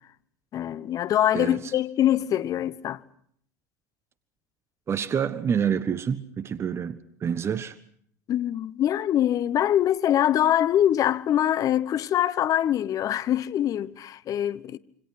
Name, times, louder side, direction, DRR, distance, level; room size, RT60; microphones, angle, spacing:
voice 1, 0.5-3.0 8.3-14.8, left 11 dB, 40° left, 1.1 m, -24 dB
voice 2, 1.3-1.7 4.9-7.7, right 7 dB, 30° right, 1.5 m, -27 dB
27.5 x 25.0 x 6.0 m
hypercardioid pair, 90°, 9 cm